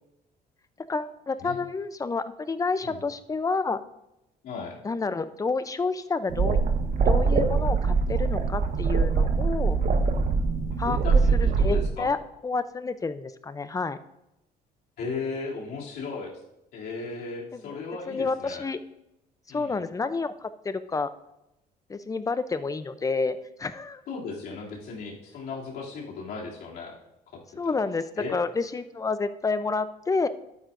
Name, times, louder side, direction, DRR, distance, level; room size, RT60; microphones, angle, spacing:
voice 1, 0.9-3.8 4.8-6.6 7.1-9.8 10.8-12.2 12.4-14.0 17.5-17.7 18.1-18.8 19.5-21.1 21.9-24.0 27.6-30.3, left 4 dB, 20° left, 12 dB, 0.6 m, -29 dB
voice 2, 4.4-4.8 10.8-12.1 15.0-16.4 16.7-18.6 19.5-19.8 24.1-26.9 27.3-27.4 28.2-28.4, left 4 dB, 70° left, -4 dB, 2.8 m, -36 dB
sound 1, 6.3-11.9, right 4 dB, 50° right, 1.1 m, -23 dB
12.0 x 9.4 x 2.6 m, 0.88 s
cardioid pair, 110°, 17 cm